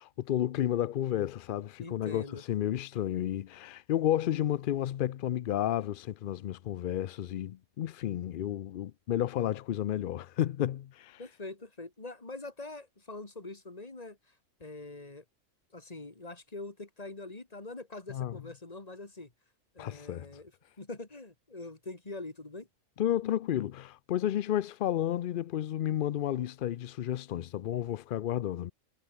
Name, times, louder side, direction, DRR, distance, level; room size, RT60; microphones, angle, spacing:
voice 1, 0.0-11.2 18.1-18.4 19.8-20.3 23.0-28.7, left 11 dB, 75° left, 0.4 m, -32 dB
voice 2, 1.8-2.4 11.2-14.2 14.6-15.2 15.7-19.3 19.7-20.5 20.8-22.7, left 2 dB, 25° left, 2.4 m, -44 dB
omnidirectional pair, 1.4 m